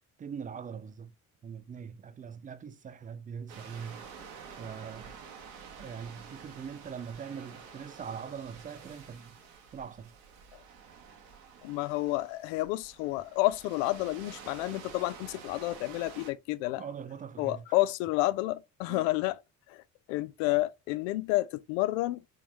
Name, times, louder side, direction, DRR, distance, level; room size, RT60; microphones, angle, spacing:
voice 1, 0.2-1.1 1.4-4.1 4.6-5.2 5.8-9.4 9.7-10.1 16.8-17.7 18.9-19.1, right 7 dB, 20° right, 0.4 m, -42 dB
sound 1, 3.5-16.3, right 6 dB, 70° right, 1.0 m, -49 dB
voice 2, 11.6-16.8 17.4-19.4 19.7-19.8 20.1-22.2, left 18 dB, 60° left, 0.5 m, -30 dB
4.0 x 3.4 x 2.9 m
figure-of-eight pair, 45°, 44 cm